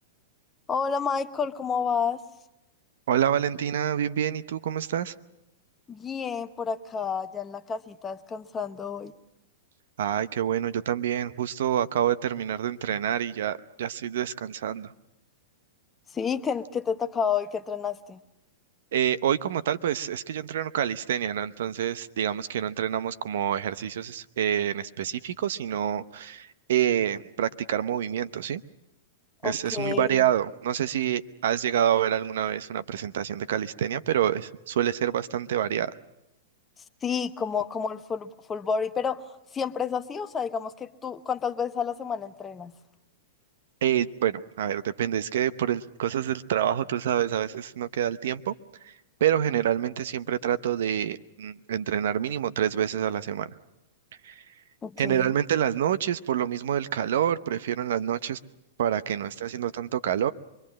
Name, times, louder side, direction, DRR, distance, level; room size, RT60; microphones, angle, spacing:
voice 1, 0.7-2.2 5.9-9.1 16.1-18.2 29.4-30.1 37.0-39.2 39.5-42.7 54.8-55.3, left 6 dB, 20° left, 10 dB, 1.0 m, -30 dB
voice 2, 3.1-5.1 10.0-14.9 18.9-28.6 29.4-35.9 43.8-48.5 49.2-53.5 54.2-54.3 55.0-58.4 58.8-60.3, right 10 dB, 65° right, 13 dB, 0.8 m, -27 dB
25.0 x 22.0 x 7.6 m, 0.91 s
hypercardioid pair, 105°, 0 cm